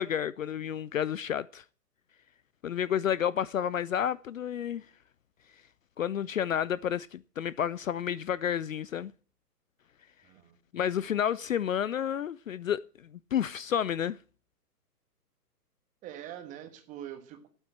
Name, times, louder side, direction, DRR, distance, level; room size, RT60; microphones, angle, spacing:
voice 1, 0.0-1.6 2.6-4.9 6.0-9.1 10.7-12.8 13.3-14.2, left 9 dB, 55° left, 0.5 m, -30 dB
voice 2, 10.2-10.6 16.0-17.5, right 11 dB, 15° right, 1.4 m, -44 dB
9.0 x 8.8 x 7.5 m
figure-of-eight pair, 135°, 48 cm